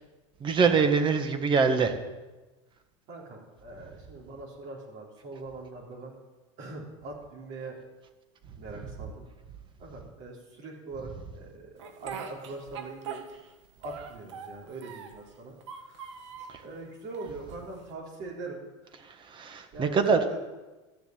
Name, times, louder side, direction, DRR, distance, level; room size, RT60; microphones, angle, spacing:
voice 1, 0.4-2.0 16.5-16.6 19.0-20.3, right 5 dB, 35° right, 8 dB, 1.6 m, -24 dB
voice 2, 3.1-6.1 6.6-7.8 8.5-9.2 9.8-13.2 13.8-16.1 16.6-18.9 19.7-20.5, right 2 dB, 55° right, -3 dB, 4.0 m, -42 dB
Speech, 11.8-13.5 13.8-15.2 15.6-16.6 17.1-17.9, right 7 dB, 85° right, 1.5 m, -42 dB
13.0 x 7.1 x 9.0 m, 1.2 s
supercardioid pair, 110°, 15 cm